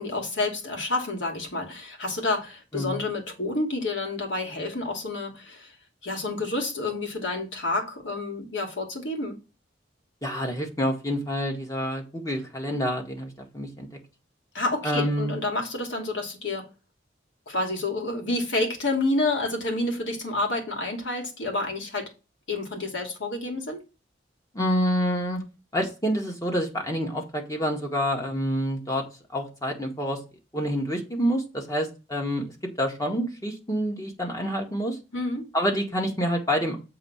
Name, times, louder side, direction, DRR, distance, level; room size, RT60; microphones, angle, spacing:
voice 1, 0.0-5.8 6.0-9.4 14.5-16.7 17.5-22.1 22.5-23.8 35.1-35.5, left 2 dB, 80° left, 2.6 m, -29 dB
voice 2, 10.2-13.9 14.8-15.4 24.5-25.4 25.7-29.0 29.3-30.2 30.5-32.5 32.8-35.0 35.5-36.8, equal, 20° left, 1.9 m, -27 dB
7.6 x 3.8 x 5.9 m
head